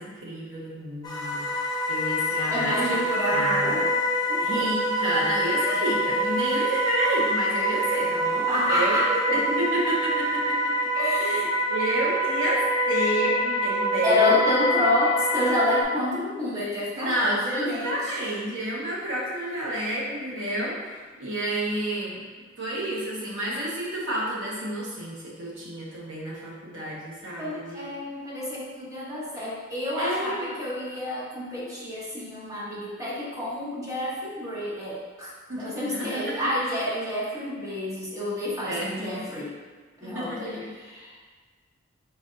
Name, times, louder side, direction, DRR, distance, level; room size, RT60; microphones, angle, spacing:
voice 1, 0.0-3.0 3.3-3.9 4.4-10.6 11.2-12.6 12.9-14.4 17.0-22.2 22.6-27.9 30.0-30.5 35.5-36.5 38.7-39.3 40.0-40.7, right 1 dB, 75° right, -5 dB, 1.1 m, -30 dB
sound 1, 1.0-15.8, equal, 20° left, 0.5 m, -26 dB
voice 2, 2.5-3.9 4.3-4.7 8.5-9.1 10.9-11.3 14.0-17.9 27.4-35.3 35.6-39.5 40.0-41.3, left 1 dB, 15° right, -7 dB, 1.1 m, -29 dB
4.3 x 4.1 x 2.6 m, 1.4 s
head